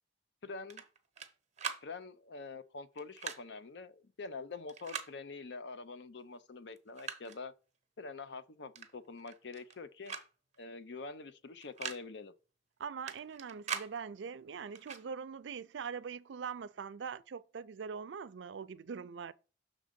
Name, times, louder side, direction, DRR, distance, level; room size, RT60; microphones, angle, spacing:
voice 1, 0.4-0.8 1.8-7.5 8.0-10.1 10.6-12.3, left 4 dB, 70° left, 0.6 m, -45 dB
sound 1, 0.7-1.3 1.6-1.8 3.0-3.4 4.7-5.1 6.2-6.3 6.7-7.4 8.7-8.9 9.2-9.8 10.1-10.3 10.5-10.6 11.6-12.0 13.1-13.9 14.7-15.0, right 7 dB, 40° right, 0.8 m, -41 dB
voice 2, 12.8-19.3, right 6 dB, 80° right, 0.4 m, -42 dB
6.3 x 3.7 x 5.2 m
head